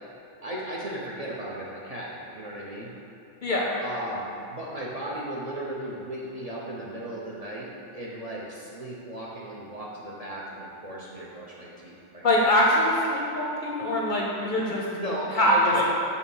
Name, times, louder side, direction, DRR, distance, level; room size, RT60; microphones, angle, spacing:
voice 1, 0.4-2.9 3.8-12.2 14.5-15.8, right 1 dB, 40° right, -6 dB, 0.6 m, -36 dB
voice 2, 3.4-3.7 12.2-14.8 15.4-15.8, left 1 dB, 55° left, -3 dB, 0.6 m, -23 dB
6.4 x 2.9 x 5.3 m, 2.7 s
omnidirectional pair, 1.2 m